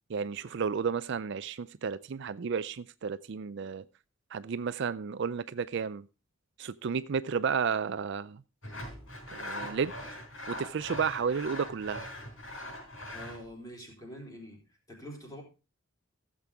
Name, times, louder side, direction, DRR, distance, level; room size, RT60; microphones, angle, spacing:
voice 1, 0.1-3.8 4.3-6.1 6.6-8.4 9.3-9.9 10.5-12.1, right 6 dB, 55° right, 0.4 m, -32 dB
Sawing, 8.6-13.4, left 1 dB, 65° left, 4.4 m, -41 dB
voice 2, 13.1-14.6 14.9-15.4, equal, 15° left, 3.8 m, -45 dB
16.0 x 7.5 x 3.5 m
head